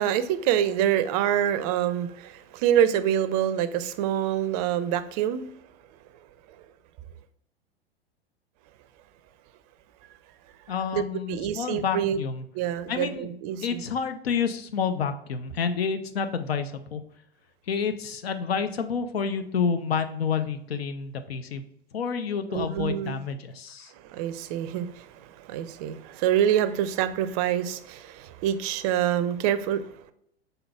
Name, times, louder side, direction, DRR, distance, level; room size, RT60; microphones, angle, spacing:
voice 1, 0.0-5.5 10.9-11.0 11.3-12.2 12.5-13.8 22.5-23.1 24.0-29.9, right 10 dB, 40° right, 12 dB, 0.5 m, -26 dB
voice 2, 10.7-12.5 12.9-13.3 13.6-17.0 17.7-21.6 21.9-23.9, left 6 dB, 75° left, 9 dB, 0.6 m, -29 dB
5.6 x 3.9 x 2.3 m, 0.71 s
figure-of-eight pair, 95°, 31 cm